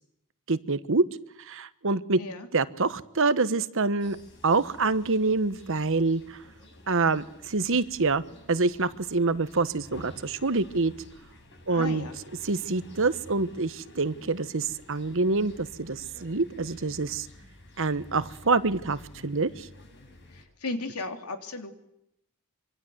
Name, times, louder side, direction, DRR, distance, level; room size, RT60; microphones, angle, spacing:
voice 1, 0.5-1.0 1.4-2.2 2.5-4.2 4.4-6.4 6.9-8.2 8.5-10.9 11.7-12.1 12.4-17.3 17.8-19.7, right 3 dB, 60° right, 14 dB, 1.2 m, -26 dB
voice 2, 2.2-2.5 11.7-12.1 20.3-21.7, left 2 dB, 85° left, 5 dB, 3.3 m, -35 dB
sound 1, 4.0-20.4, left 1 dB, 55° left, 7.7 m, -50 dB
26.0 x 24.5 x 7.9 m, 0.79 s
head